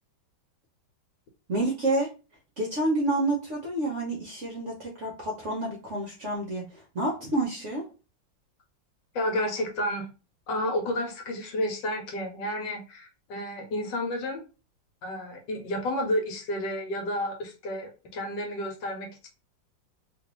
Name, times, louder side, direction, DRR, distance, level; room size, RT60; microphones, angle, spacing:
voice 1, 1.5-2.1 2.6-7.9, right 2 dB, 55° right, -1 dB, 0.8 m, -29 dB
voice 2, 9.1-10.1 10.5-14.5 15.0-19.3, left 1 dB, 75° left, 4 dB, 1.4 m, -31 dB
3.0 x 2.5 x 3.0 m, 0.31 s
omnidirectional pair, 2.0 m